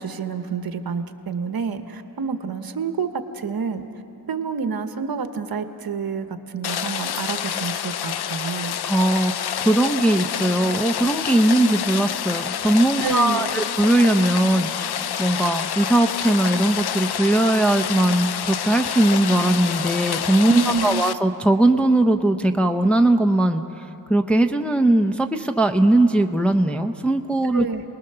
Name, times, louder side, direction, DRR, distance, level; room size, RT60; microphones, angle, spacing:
voice 1, 0.0-3.8 4.3-8.8 13.0-13.6 20.5-21.0 27.5-27.8, right 5 dB, 55° right, 8 dB, 1.2 m, -28 dB
Rain, 6.6-21.1, left 9 dB, 65° left, 0.6 m, -28 dB
voice 2, 8.9-9.3 9.6-23.6 24.1-27.7, right 1 dB, 5° left, 4 dB, 0.7 m, -19 dB
27.0 x 20.0 x 6.8 m, 3.0 s
wide cardioid pair, 110°, 43 cm